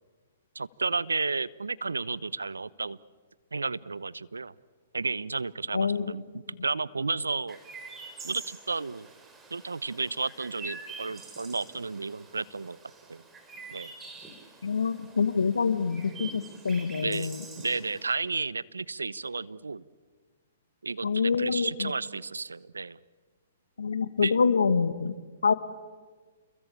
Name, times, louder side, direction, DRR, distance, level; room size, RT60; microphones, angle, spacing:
voice 1, 0.5-3.0 3.5-4.5 4.9-7.6 8.2-9.1 9.5-12.8 13.1-13.2 13.7-13.9 16.9-17.4 17.6-19.8 20.8-23.0 24.2-24.3, right 4 dB, 85° right, 19 dB, 0.8 m, -32 dB
voice 2, 5.7-6.0 14.6-17.4 21.0-21.9 23.8-25.1 25.4-25.5, left 5 dB, 80° left, 12 dB, 1.8 m, -26 dB
Chirp tweet, 7.5-18.1, right 3 dB, 15° right, 4.3 m, -46 dB
29.5 x 21.5 x 8.7 m, 1.4 s
hypercardioid pair, 125°, 0 cm